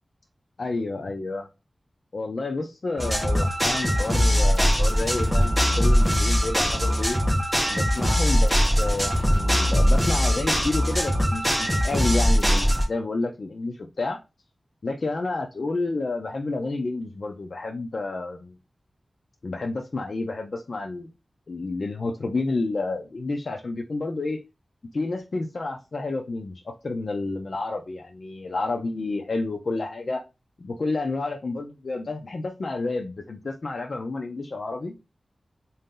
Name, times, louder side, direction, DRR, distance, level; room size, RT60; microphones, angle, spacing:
voice 1, 0.6-1.5 2.1-7.2 7.7-14.2 14.8-18.5 19.4-21.1 21.5-24.4 24.9-30.2 30.6-34.9, left 3 dB, 65° left, 2 dB, 0.5 m, -30 dB
sound 1, 3.0-12.8, equal, 10° right, 1.4 m, -21 dB
3.7 x 2.7 x 3.7 m, 0.26 s
wide cardioid pair, 80°, 0 cm